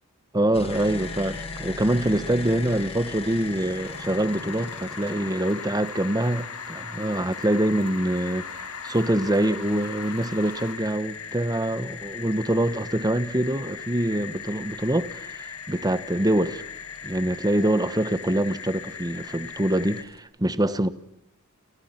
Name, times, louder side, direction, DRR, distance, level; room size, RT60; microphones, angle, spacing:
voice 1, 0.3-6.4 6.8-16.6 17.0-20.9, right 1 dB, 20° right, 1.2 m, -25 dB
sound 1, 0.5-20.2, left 2 dB, 25° left, 2.4 m, -44 dB
sound 2, 0.7-20.0, left 7 dB, 70° left, 1.9 m, -39 dB
sound 3, 3.8-10.8, left 4 dB, 85° left, 3.2 m, -42 dB
29.0 x 28.5 x 6.0 m
head